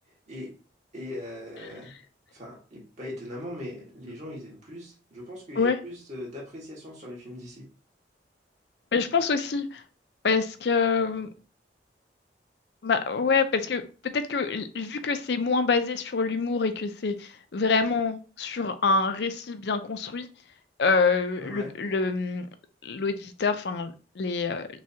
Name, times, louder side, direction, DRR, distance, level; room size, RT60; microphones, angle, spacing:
voice 1, 0.9-2.0 2.3-7.7 21.4-21.7, left 1 dB, 40° right, -4 dB, 1.6 m, -40 dB
voice 2, 8.9-9.8 10.2-11.3 12.8-20.3 20.8-22.5 22.8-24.7, left 4 dB, 70° left, 9 dB, 0.5 m, -26 dB
6.0 x 2.3 x 2.8 m, 0.35 s
head